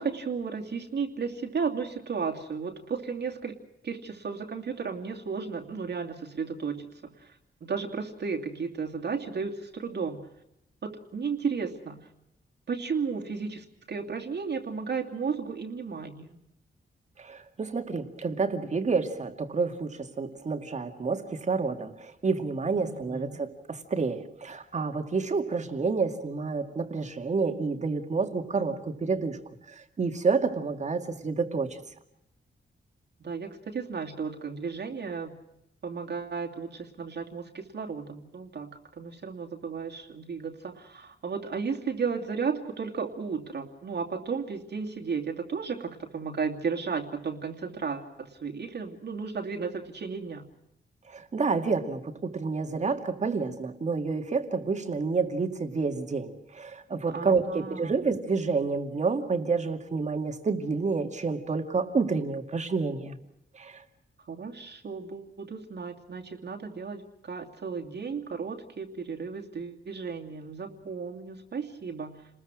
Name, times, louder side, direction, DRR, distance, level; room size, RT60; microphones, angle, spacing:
voice 1, 0.0-3.6 3.8-10.3 10.8-12.1 12.7-16.4 22.8-23.4 33.2-35.4 35.8-50.4 57.1-58.0 64.3-72.3, right 5 dB, 65° right, 2 dB, 2.7 m, -34 dB
voice 2, 17.2-29.4 29.7-31.8 51.1-63.2 63.6-63.8, right 4 dB, 40° right, 6 dB, 2.3 m, -29 dB
30.0 x 21.0 x 6.2 m, 0.82 s
wide cardioid pair, 175°, 19 cm